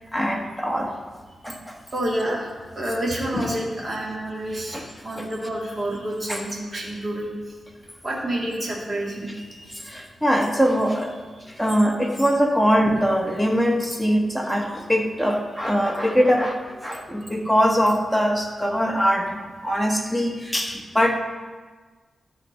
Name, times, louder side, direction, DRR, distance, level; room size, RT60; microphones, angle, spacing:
voice 1, 0.1-0.9 1.4-1.8 3.3-3.5 4.7-5.3 6.3-6.4 9.7-11.1 11.5-21.2, equal, ahead, 1 dB, 1.2 m, -22 dB
voice 2, 1.9-4.8 5.0-7.3 8.0-9.8, right 1 dB, 30° right, -4 dB, 2.1 m, -28 dB
12.5 x 4.3 x 6.3 m, 1.4 s
wide cardioid pair, 115°, 0 cm